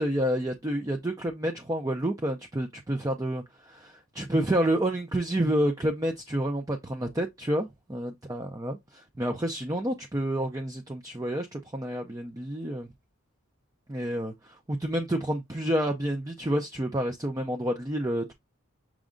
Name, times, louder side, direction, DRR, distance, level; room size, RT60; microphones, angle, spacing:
voice 1, 0.0-12.9 13.9-18.3, right 1 dB, 15° right, 0.4 m, -29 dB
6.2 x 2.3 x 3.7 m
head